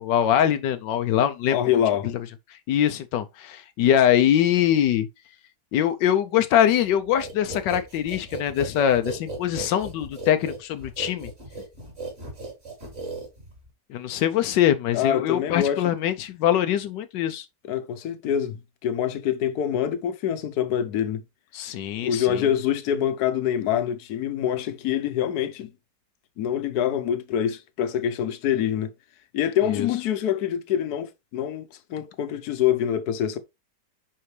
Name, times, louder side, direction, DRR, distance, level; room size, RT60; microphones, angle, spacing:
voice 1, 0.0-1.6 2.7-5.1 5.7-11.3 13.9-17.4 21.5-22.5 29.7-29.9, left 10 dB, 85° left, 1.3 m, -23 dB
voice 2, 1.5-2.1 14.9-15.8 17.7-21.2 22.0-25.7 26.4-28.9 29.3-33.4, left 10 dB, 65° left, 1.3 m, -25 dB
sound 1, 7.2-13.7, right 2 dB, 35° right, 2.9 m, -36 dB
10.0 x 3.7 x 3.2 m
omnidirectional pair, 1.8 m